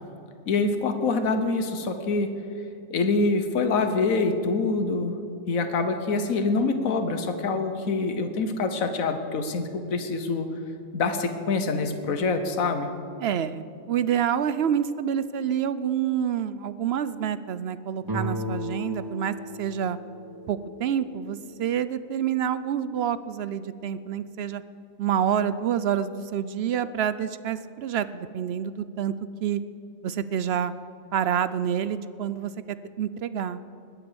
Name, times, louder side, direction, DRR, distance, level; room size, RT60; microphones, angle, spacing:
voice 1, 0.5-2.3 2.9-5.1 5.5-10.5 10.9-12.9, left 3 dB, 80° left, 7 dB, 1.5 m, -25 dB
voice 2, 13.2-20.0 20.5-24.6 25.0-29.1 29.4-29.6 30.0-30.7 31.1-32.5 33.0-33.6, right 9 dB, 65° right, 15 dB, 0.7 m, -27 dB
sound 1, 18.0-21.7, equal, 20° right, 0.6 m, -35 dB
20.0 x 8.7 x 6.9 m, 2.6 s
omnidirectional pair, 1.4 m